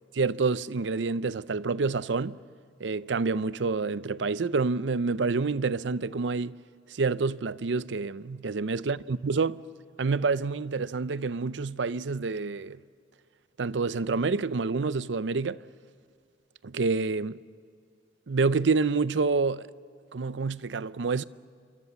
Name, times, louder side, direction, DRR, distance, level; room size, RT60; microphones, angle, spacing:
voice 1, 0.2-2.4 2.8-6.6 6.9-9.6 10.0-12.8 13.6-15.6 16.6-17.4 18.3-19.7 20.1-21.2, right 4 dB, 70° right, 0.6 m, -28 dB
28.0 x 24.0 x 7.1 m
head